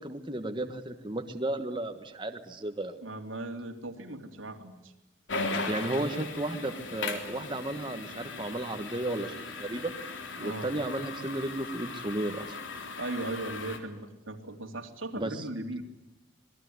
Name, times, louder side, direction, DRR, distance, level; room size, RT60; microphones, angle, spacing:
voice 1, 0.0-2.9 5.7-9.9 10.4-12.6 15.2-15.4, right 1 dB, 25° right, 6 dB, 1.4 m, -34 dB
voice 2, 3.0-4.9 10.4-10.7 13.0-14.0 14.3-15.8, right 2 dB, 85° right, 4 dB, 3.3 m, -37 dB
sound 1, 5.3-13.8, left 3 dB, 70° left, 3.6 m, -38 dB
26.0 x 20.0 x 9.6 m, 0.98 s
head